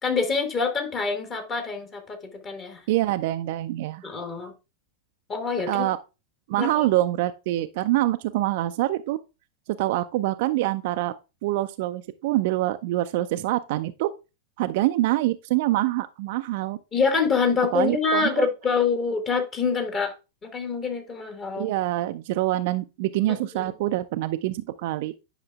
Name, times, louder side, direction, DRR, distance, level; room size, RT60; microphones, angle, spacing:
voice 1, 0.0-2.2 2.4-2.8 4.0-4.5 5.3-5.9 6.6-6.9 16.9-20.1 20.4-21.7 23.3-23.4, left 5 dB, 25° left, 1.4 m, -25 dB
voice 2, 2.9-4.1 5.7-6.0 6.5-9.2 9.8-11.1 11.4-14.1 14.6-16.8 17.7-18.5 21.6-25.1, right 16 dB, 50° right, 0.4 m, -25 dB
10.0 x 5.6 x 2.3 m
figure-of-eight pair, 90°, 0 cm